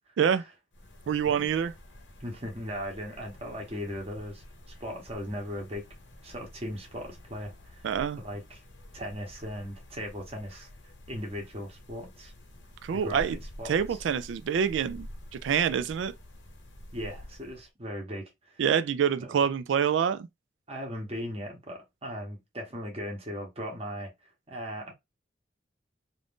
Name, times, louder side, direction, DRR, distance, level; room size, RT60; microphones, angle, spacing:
sound 1, 0.7-17.7, equal, 85° left, 0.9 m, -48 dB
voice 1, 1.1-1.7 7.8-8.2 12.8-13.4 13.7-15.1 15.4-16.1 18.6-20.3, right 7 dB, 85° right, 0.3 m, -26 dB
voice 2, 2.2-4.4 4.8-5.8 6.2-7.9 8.2-8.6 8.9-10.7 11.1-12.3 12.9-13.8 16.9-18.6 19.2-19.4 20.7-24.1 24.5-24.9, equal, 35° right, 0.9 m, -38 dB
2.5 x 2.5 x 3.5 m
head